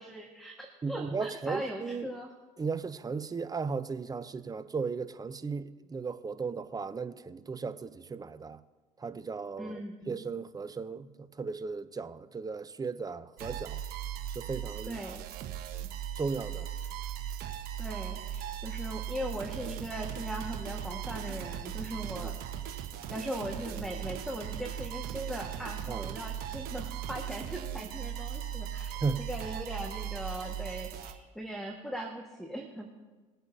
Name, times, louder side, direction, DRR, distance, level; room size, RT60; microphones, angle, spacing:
voice 1, 0.0-2.3 9.6-10.2 14.9-15.2 17.8-22.5 23.1-33.0, equal, ahead, 1.7 m, -39 dB
voice 2, 0.8-2.1 2.6-8.6 9.0-9.8 10.1-13.8 14.3-15.0 16.2-16.7 22.2-22.3 25.9-26.1 29.0-29.2, right 4 dB, 20° right, 0.7 m, -36 dB
sound 1, 13.4-31.1, right 10 dB, 65° right, 1.3 m, -38 dB
21.5 x 7.9 x 2.8 m
hypercardioid pair, 70°, 17 cm